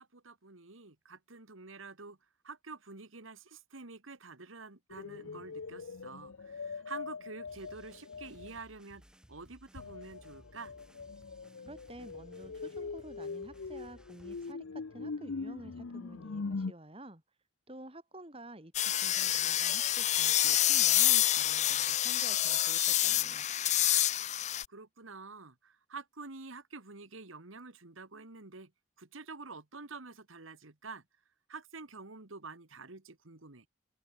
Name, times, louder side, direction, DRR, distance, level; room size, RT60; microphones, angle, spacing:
voice 1, 0.0-2.2 2.4-9.0 9.3-10.7 24.7-28.7 29.0-31.0 31.5-33.7, right 3 dB, 80° right, 1.9 m, -48 dB
sound 1, 4.9-8.6 9.8-16.7, left 4 dB, 85° left, 0.7 m, -42 dB
sound 2, 7.5-14.5, equal, 5° right, 4.2 m, -60 dB
voice 2, 11.6-17.2 17.7-23.5, right 1 dB, 25° right, 3.0 m, -50 dB
sound 3, 18.7-24.6, left 12 dB, 35° left, 0.6 m, -27 dB
open air
head